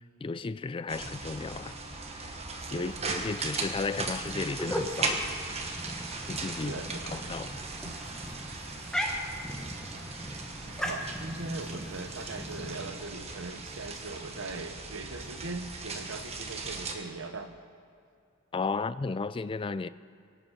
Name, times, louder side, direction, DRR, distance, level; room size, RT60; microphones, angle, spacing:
voice 1, 0.2-1.8 2.2-2.3 2.7-5.2 6.3-7.6 18.5-19.9, left 4 dB, 25° left, 0.3 m, -34 dB
sound 1, 0.9-17.0, right 3 dB, 30° right, 1.3 m, -38 dB
voice 2, 2.6-3.1 6.6-7.4 7.8-8.0 8.6-8.7 9.0-9.1 9.9-10.0 10.6-17.5, right 3 dB, 65° right, 1.1 m, -40 dB
sound 2, 4.5-12.8, equal, 5° left, 1.3 m, -38 dB
24.5 x 8.2 x 5.9 m
head